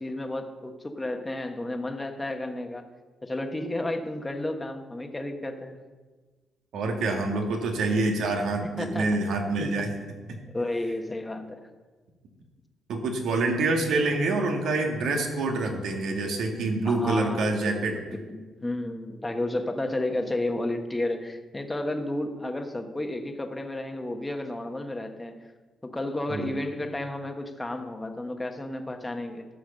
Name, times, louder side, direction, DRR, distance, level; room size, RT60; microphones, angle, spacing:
voice 1, 0.0-2.8 3.2-5.8 8.8-9.1 9.6-9.7 10.5-11.6 15.2-15.3 16.8-18.0 18.3-25.3 25.8-29.5, left 1 dB, 15° left, 5 dB, 1.2 m, -32 dB
voice 2, 6.7-9.9 12.9-18.0 26.3-26.5, right 2 dB, 75° right, 2 dB, 1.9 m, -26 dB
13.0 x 5.8 x 6.7 m, 1.3 s
cardioid pair, 90°, 0 cm